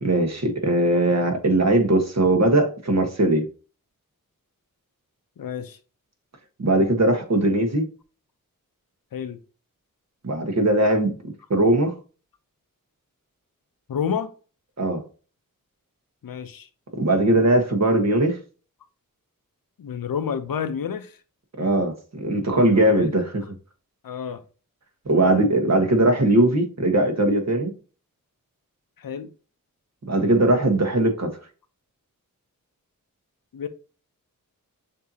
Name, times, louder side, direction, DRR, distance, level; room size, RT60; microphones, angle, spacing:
voice 1, 0.0-3.5 6.6-7.9 10.2-11.1 11.5-11.9 14.8-15.0 17.0-18.4 21.6-23.4 25.0-27.7 30.1-31.3, right 1 dB, 50° right, 1.3 m, -20 dB
voice 2, 5.4-5.8 9.1-9.4 13.9-14.3 16.2-16.7 19.8-21.2 22.5-22.7 22.9-23.1 24.0-24.4 29.0-29.3 33.5-33.7, left 7 dB, 80° left, 0.7 m, -29 dB
6.7 x 2.8 x 2.8 m
wide cardioid pair, 60°, 34 cm